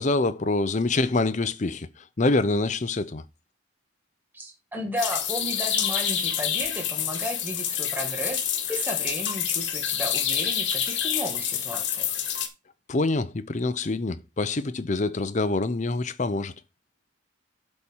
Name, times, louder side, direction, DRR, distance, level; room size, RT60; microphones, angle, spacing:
voice 1, 0.0-1.9 2.2-3.2 12.9-16.5, left 2 dB, 35° left, 0.6 m, -25 dB
voice 2, 4.3-12.1, equal, 10° right, 2.1 m, -34 dB
sound 1, 5.0-12.5, left 9 dB, 60° left, 1.5 m, -27 dB
8.1 x 4.4 x 7.1 m
head